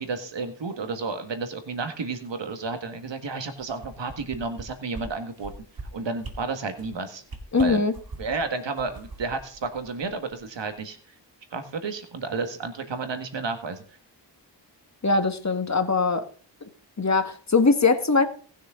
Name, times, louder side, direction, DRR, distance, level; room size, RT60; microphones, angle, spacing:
voice 1, 0.0-5.5 5.9-7.2 7.6-7.8 8.2-11.0 11.5-13.8, right 4 dB, 85° right, 8 dB, 1.8 m, -31 dB
sound 1, 3.6-4.6 4.9-5.1 5.4-5.8 6.2-6.4 6.7-6.9 7.3-8.4 8.8-10.4 10.7-10.8, right 3 dB, 55° right, 2.4 m, -40 dB
voice 2, 7.5-7.9 15.0-16.2 17.0-18.3, left 4 dB, 40° left, 8 dB, 1.8 m, -21 dB
19.0 x 6.5 x 3.8 m, 0.43 s
cardioid pair, 55°, 43 cm